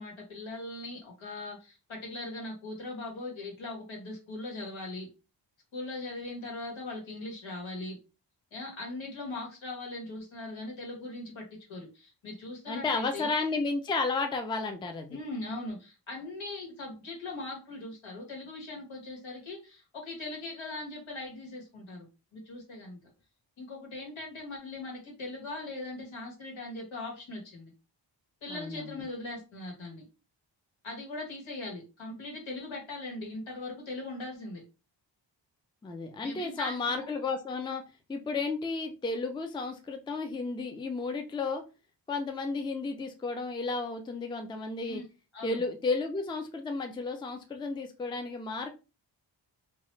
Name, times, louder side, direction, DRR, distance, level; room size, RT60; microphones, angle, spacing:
voice 1, 0.0-5.1 5.7-8.0 8.5-13.3 15.1-22.1 22.3-23.0 23.6-27.7 28.4-30.0 30.8-34.6 36.2-37.1 44.9-45.1 45.3-45.6, left 2 dB, 90° left, -1 dB, 1.5 m, -40 dB
voice 2, 12.7-15.2 28.5-29.1 35.8-41.6 42.1-45.0 45.4-48.7, left 3 dB, 10° left, 6 dB, 0.3 m, -33 dB
2.9 x 2.3 x 3.2 m, 0.30 s
wide cardioid pair, 160°, 46 cm